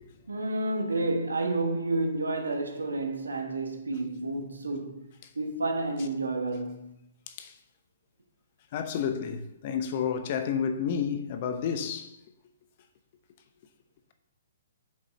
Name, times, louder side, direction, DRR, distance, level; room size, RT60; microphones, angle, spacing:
voice 1, 0.3-5.1 5.3-7.0, right 2 dB, 85° right, 1.3 m, -30 dB
voice 2, 7.3-7.6 8.7-12.2, left 7 dB, 45° left, 0.9 m, -31 dB
7.2 x 5.4 x 4.2 m
hypercardioid pair, 130°, 0 cm